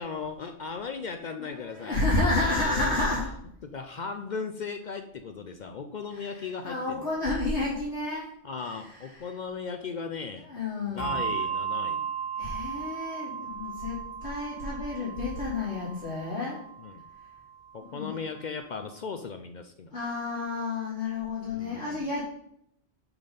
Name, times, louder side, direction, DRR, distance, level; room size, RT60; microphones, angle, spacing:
voice 1, 0.0-2.0 2.4-3.2 3.6-7.0 8.4-10.5 10.9-12.1 16.8-17.1 17.7-19.9 21.5-22.1, left 5 dB, 55° left, 7 dB, 0.5 m, -37 dB
voice 2, 1.4-3.2 6.1-8.3 8.6-8.7 9.2-9.3 10.4-11.5 12.4-16.6 17.9-18.1 19.9-22.2, left 2 dB, 70° left, -10 dB, 3.3 m, -30 dB
Bell, 11.0-17.8, right 7 dB, 5° left, 3.1 m, -36 dB
5.9 x 5.2 x 5.6 m, 0.73 s
omnidirectional pair, 1.2 m